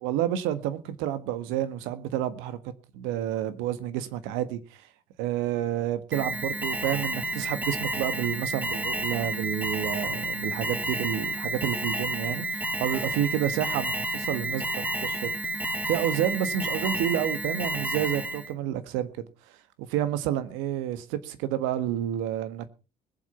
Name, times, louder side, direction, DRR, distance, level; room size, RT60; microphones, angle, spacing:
voice 1, 0.0-2.6 2.9-4.9 5.2-15.3 15.9-19.3 19.8-22.7, right 11 dB, 75° right, 1.5 m, -29 dB
Alarm, 6.1-18.5, right 1 dB, 10° right, 2.1 m, -31 dB
20.5 x 7.6 x 5.6 m
hypercardioid pair, 60°, 20 cm